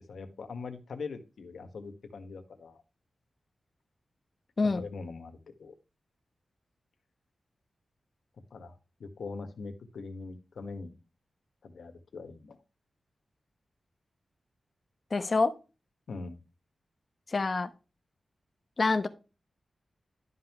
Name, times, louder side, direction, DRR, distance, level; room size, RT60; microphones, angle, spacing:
voice 1, 0.1-2.8 4.7-5.7 8.5-11.0 11.6-12.6 16.1-16.4, left 4 dB, 85° left, 7 dB, 1.6 m, -42 dB
voice 2, 15.1-15.5 17.3-17.7 18.8-19.1, left 3 dB, 40° left, 9 dB, 1.0 m, -26 dB
12.0 x 5.6 x 3.0 m, 0.30 s
wide cardioid pair, 150°, 0 cm